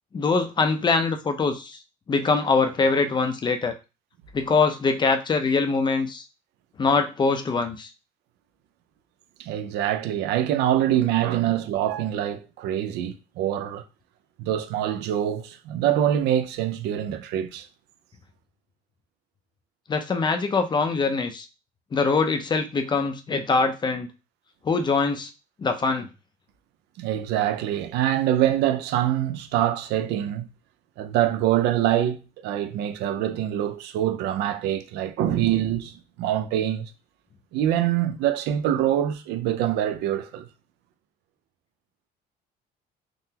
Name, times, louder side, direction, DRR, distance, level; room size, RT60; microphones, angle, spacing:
voice 1, 0.1-1.8 2.1-3.7 4.3-6.2 6.8-7.9 19.9-21.5 21.9-24.1 24.6-25.3 25.6-26.1, left 4 dB, 25° left, 0.4 m, -23 dB
voice 2, 9.4-13.8 14.4-17.7 27.0-30.5 31.0-36.9 37.5-40.5, right 11 dB, 80° right, 0.4 m, -25 dB
3.7 x 2.0 x 2.8 m
cardioid pair, 110°, 17 cm